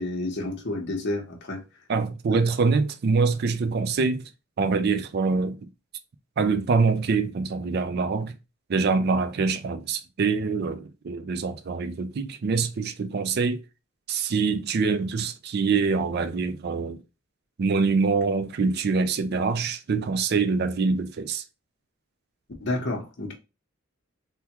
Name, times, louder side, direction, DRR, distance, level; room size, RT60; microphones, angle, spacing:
voice 1, 0.0-1.6 2.3-2.4 22.6-23.3, left 2 dB, 55° left, 0.9 m, -30 dB
voice 2, 1.9-4.3 4.6-5.6 6.4-8.4 8.7-13.6 14.1-17.0 17.6-21.4, right 4 dB, 50° right, 0.4 m, -25 dB
3.5 x 2.2 x 2.9 m
head